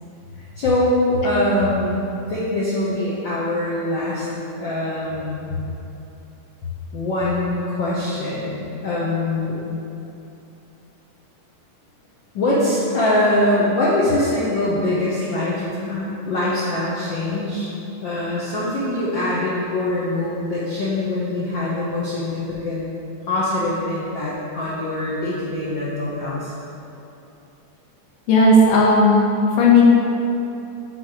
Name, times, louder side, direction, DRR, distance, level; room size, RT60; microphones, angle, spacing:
voice 1, 0.4-4.2 4.5-5.5 6.9-9.6 12.3-17.7 18.0-22.9 23.3-26.5, left 1 dB, 85° left, -8 dB, 1.0 m, -23 dB
voice 2, 28.3-29.3 29.6-29.8, left 2 dB, 65° left, -4 dB, 2.0 m, -13 dB
6.1 x 3.9 x 6.1 m, 2.8 s
omnidirectional pair, 3.4 m